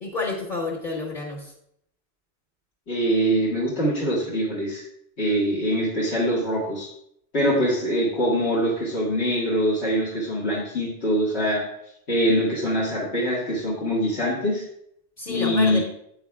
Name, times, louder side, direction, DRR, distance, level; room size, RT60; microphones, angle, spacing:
voice 1, 0.0-1.5 15.2-15.8, left 3 dB, 50° left, -2 dB, 1.3 m, -29 dB
voice 2, 2.9-4.8 5.2-6.9 7.3-11.7 12.1-14.6 15.3-15.8, equal, 85° left, -4 dB, 2.1 m, -23 dB
9.3 x 8.0 x 2.3 m, 0.71 s
omnidirectional pair, 1.1 m